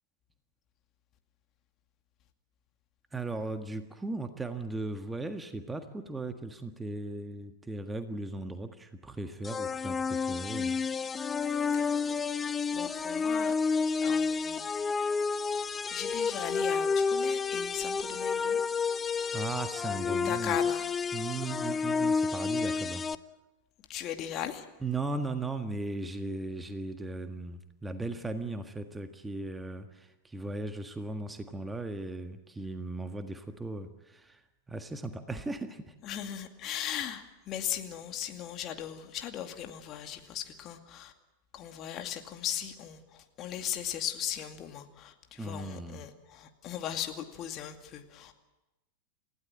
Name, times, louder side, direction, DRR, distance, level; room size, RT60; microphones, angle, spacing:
voice 1, 3.1-10.8 19.3-20.6 21.1-23.0 24.8-34.4 34.7-35.9 45.4-46.0, right 2 dB, 10° right, 7 dB, 1.7 m, -37 dB
sound 1, 9.4-23.1, left 5 dB, 20° left, 0.8 m, -30 dB
voice 2, 11.5-12.2 12.7-13.5 14.0-14.7 15.5-18.6 20.1-20.9 23.9-24.7 36.0-41.1 41.5-48.3, left 10 dB, 35° left, 6 dB, 2.3 m, -38 dB
29.5 x 16.0 x 8.8 m, 1.0 s
figure-of-eight pair, 90°, 0 cm